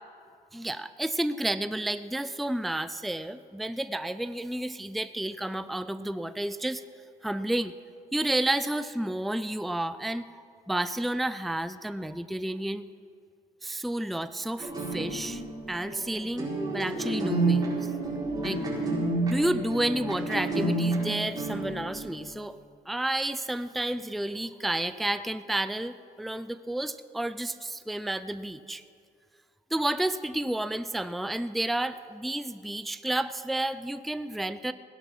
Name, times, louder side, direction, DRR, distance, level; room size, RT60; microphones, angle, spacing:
voice 1, 0.5-6.8 7.2-7.7 8.1-12.9 13.6-15.4 15.7-17.9 18.4-18.6 19.3-22.5 22.9-28.8 29.7-34.7, right 1 dB, ahead, 12 dB, 0.4 m, -31 dB
sound 1, 14.6-22.3, right 2 dB, 20° right, 4.9 m, -30 dB
17.0 x 11.0 x 5.7 m, 2.2 s
cardioid pair, 110°, 17 cm